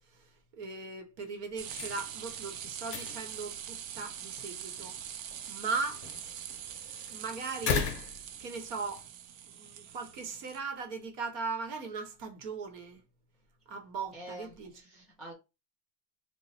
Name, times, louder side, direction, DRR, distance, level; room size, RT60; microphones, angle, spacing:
voice 1, 0.1-5.0 5.5-6.1 7.1-8.0 8.4-9.1 9.4-13.0 13.7-14.8, right 4 dB, 50° right, 1.0 m, -38 dB
sound 1, 1.6-9.1, left 7 dB, 40° left, 0.8 m, -40 dB
sound 2, 1.6-10.6, right 10 dB, 65° right, 0.6 m, -43 dB
voice 2, 14.1-15.3, right 1 dB, ahead, 0.4 m, -47 dB
3.0 x 2.1 x 4.1 m
supercardioid pair, 150°, 46 cm